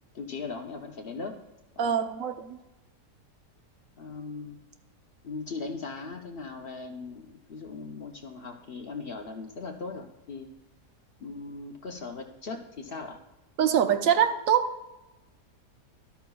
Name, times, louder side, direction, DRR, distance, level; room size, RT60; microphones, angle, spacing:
voice 1, 0.1-1.4 1.8-1.9 4.0-4.6 5.2-10.5 11.2-13.2, left 4 dB, 50° left, 3 dB, 0.7 m, -39 dB
voice 2, 1.8-2.6 13.6-14.7, right 8 dB, 60° right, 8 dB, 1.0 m, -24 dB
12.5 x 11.5 x 2.3 m, 1.0 s
omnidirectional pair, 1.8 m